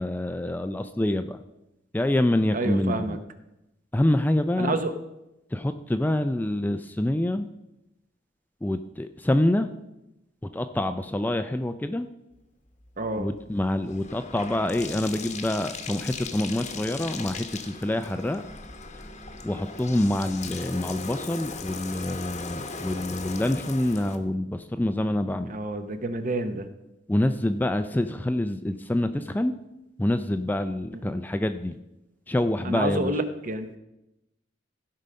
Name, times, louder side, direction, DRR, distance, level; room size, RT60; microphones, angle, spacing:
voice 1, 0.0-1.4 1.9-3.2 3.9-4.8 5.5-7.5 8.6-9.7 10.5-12.1 13.2-18.4 19.4-25.6 27.1-29.5 30.0-31.8 32.3-33.1, left 1 dB, 10° left, 9 dB, 0.3 m, -26 dB
voice 2, 2.5-3.2 4.6-4.9 13.0-13.3 25.5-26.7 32.6-33.8, right 2 dB, 45° right, 9 dB, 0.9 m, -28 dB
Bathtub (filling or washing), 12.8-24.2, left 4 dB, 35° left, 0.9 m, -38 dB
15.5 x 5.5 x 5.2 m, 0.92 s
head